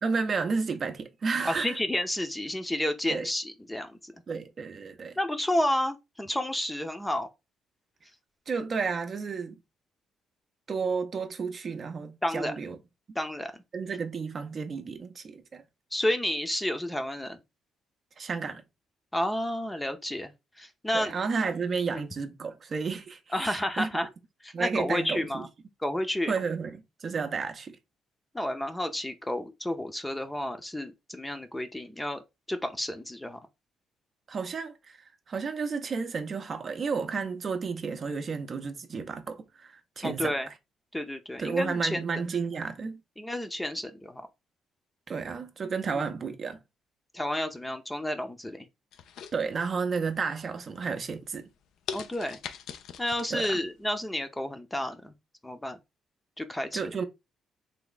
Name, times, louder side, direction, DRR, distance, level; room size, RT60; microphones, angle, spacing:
voice 1, 0.0-1.8 3.1-3.3 4.3-5.2 8.5-9.6 10.7-12.8 13.7-15.6 18.2-18.6 20.9-23.9 24.5-25.5 26.3-27.8 34.3-40.3 41.4-43.0 45.1-46.6 49.3-51.5 53.3-53.6 56.7-57.0, right 5 dB, 45° right, 0.6 m, -32 dB
voice 2, 1.4-4.1 5.2-7.3 12.2-12.5 13.1-13.5 15.9-17.4 19.1-21.1 21.9-22.0 23.3-24.1 24.4-25.5 25.8-26.3 28.3-32.2 32.5-33.4 40.0-40.5 40.9-42.0 43.2-44.2 45.9-46.1 47.1-48.7 51.9-52.4 53.0-55.1 55.4-55.8 56.4-56.8, left 1 dB, 10° left, 0.6 m, -31 dB
sound 1, 48.9-49.9 50.4-50.8 51.3-51.4 51.9-53.6 53.9-54.0, left 8 dB, 80° left, 0.4 m, -40 dB
3.4 x 2.3 x 3.8 m
cardioid pair, 90°, 0 cm